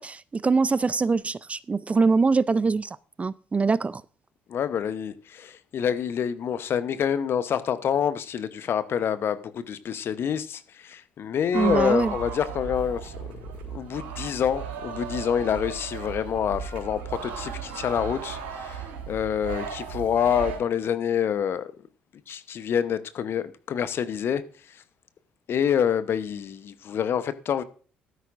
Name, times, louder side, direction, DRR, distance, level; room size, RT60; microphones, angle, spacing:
voice 1, 0.0-4.0 11.5-12.1, right 4 dB, 25° right, 0.5 m, -23 dB
voice 2, 4.5-21.7 22.3-24.4 24.7-24.8 25.5-27.6, left 8 dB, 50° left, 0.9 m, -27 dB
sound 1, 11.5-20.6, right 6 dB, 80° right, 3.9 m, -35 dB
14.5 x 12.5 x 2.6 m
figure-of-eight pair, 50°, 5 cm